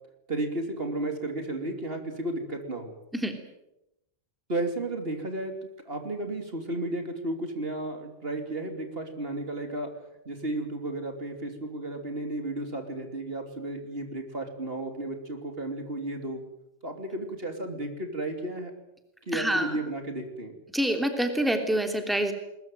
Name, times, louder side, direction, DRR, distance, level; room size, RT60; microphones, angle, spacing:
voice 1, 0.3-2.9 4.5-5.5 5.8-9.9 10.2-16.4 16.8-18.7 19.3-20.6, right 2 dB, 55° right, 5 dB, 3.2 m, -33 dB
voice 2, 19.3-19.7 20.7-22.3, right 1 dB, ahead, 5 dB, 3.1 m, -26 dB
21.5 x 21.0 x 9.2 m, 0.87 s
omnidirectional pair, 1.2 m